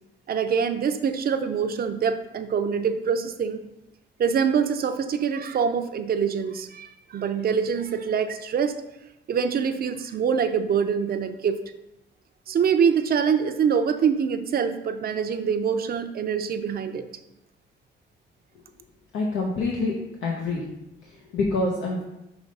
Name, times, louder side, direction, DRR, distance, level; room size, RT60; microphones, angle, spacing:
voice 1, 0.3-3.6 4.2-8.8 9.3-11.6 12.5-17.0, right 6 dB, 50° right, 8 dB, 0.5 m, -24 dB
voice 2, 19.1-19.9 20.2-20.6 21.0-22.0, left 3 dB, 90° left, -2 dB, 1.0 m, -26 dB
6.0 x 3.3 x 5.2 m, 0.91 s
cardioid pair, 120°, 19 cm